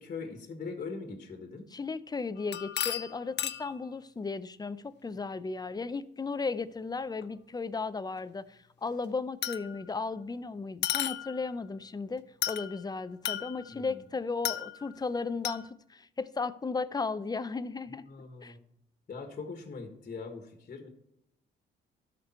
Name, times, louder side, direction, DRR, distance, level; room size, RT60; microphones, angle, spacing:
voice 1, 0.0-1.7 13.7-14.0 18.1-18.6 19.1-20.9, left 4 dB, 40° left, 5 dB, 1.5 m, -41 dB
voice 2, 1.7-18.1 18.4-18.5, left 4 dB, 20° left, 14 dB, 0.5 m, -35 dB
sound 1, 2.4-3.8 7.2-7.3 9.4-9.9 10.8-11.5 12.4-12.8 13.2-13.9 14.4-15.0 15.4-15.7, left 11 dB, 60° left, 0.6 m, -34 dB
12.5 x 5.3 x 4.3 m, 0.79 s
cardioid pair, 90°, 20 cm